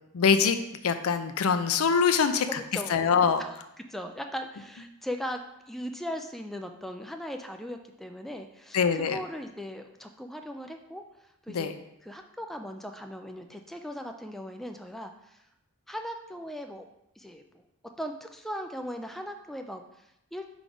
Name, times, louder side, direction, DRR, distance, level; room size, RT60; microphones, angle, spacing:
voice 1, 0.1-0.6 0.8-2.6 2.9-3.4 8.7-9.2 11.5-11.7, left 6 dB, 70° left, 9 dB, 0.5 m, -23 dB
voice 2, 2.5-3.0 3.4-3.5 3.9-5.4 5.7-11.0 11.4-11.7 12.0-15.4 15.9-16.9 17.2-17.6 18.0-20.5, equal, ahead, 5 dB, 0.3 m, -38 dB
4.7 x 3.8 x 5.2 m, 0.83 s
head